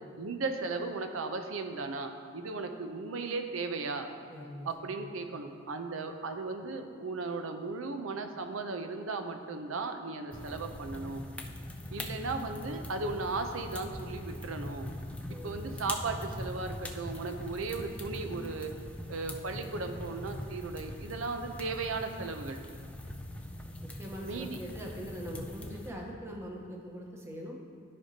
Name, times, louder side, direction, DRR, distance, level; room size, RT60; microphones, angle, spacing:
voice 1, 0.2-4.1 4.7-11.2 11.9-14.9 15.4-18.7 19.1-22.6 24.2-24.6, right 3 dB, 75° right, 6 dB, 0.6 m, -36 dB
voice 2, 4.3-5.0 15.3-16.0 23.8-27.6, equal, 15° right, -1 dB, 0.9 m, -42 dB
sound 1, 10.3-25.9, left 1 dB, 5° left, 0.4 m, -42 dB
13.0 x 5.1 x 2.8 m, 2.3 s
head